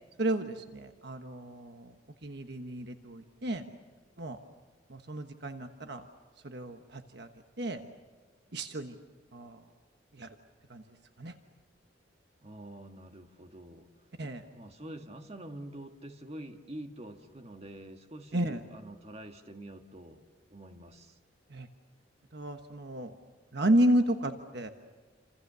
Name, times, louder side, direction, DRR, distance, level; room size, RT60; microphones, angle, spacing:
voice 1, 0.2-1.9 2.2-3.6 4.2-4.4 4.9-6.1 6.4-7.3 7.6-7.8 8.5-8.9 9.3-9.6 10.1-10.3 10.7-10.8 11.2-11.3 14.2-14.4 18.3-18.6 21.5-21.7 22.3-23.1 23.5-24.7, right 1 dB, 60° right, 6 dB, 1.3 m, -31 dB
voice 2, 12.4-13.9 14.5-20.2 20.5-21.2, right 1 dB, 35° right, 5 dB, 1.7 m, -46 dB
28.5 x 27.5 x 6.9 m, 1.4 s
head